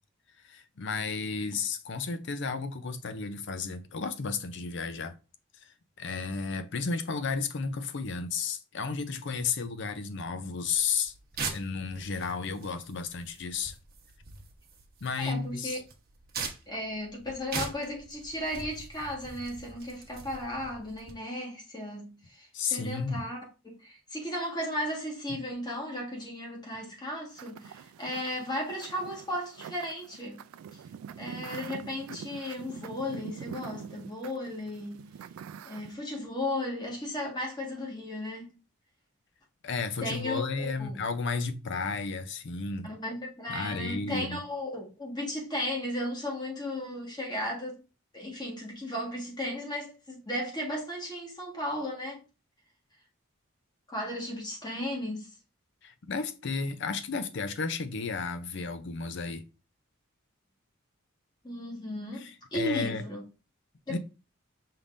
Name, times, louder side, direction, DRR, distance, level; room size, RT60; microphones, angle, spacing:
voice 1, 0.4-5.1 6.0-11.1 11.5-13.8 15.0-15.8 22.5-23.3 25.3-25.4 39.6-42.9 43.5-44.4 55.8-59.4 62.1-63.0 63.9-64.0, left 4 dB, 55° left, 0.5 m, -33 dB
sound 1, 10.7-21.1, right 4 dB, 45° right, 1.1 m, -42 dB
voice 2, 15.2-15.8 16.7-23.4 23.6-30.4 30.7-30.8 31.2-35.1 35.6-38.5 40.0-41.0 42.8-47.8 48.1-52.2 53.9-55.3 61.4-63.2 63.9-64.0, left 1 dB, 20° left, 1.5 m, -35 dB
sound 2, 27.4-36.0, right 7 dB, 85° right, 0.3 m, -45 dB
5.7 x 3.5 x 2.5 m
head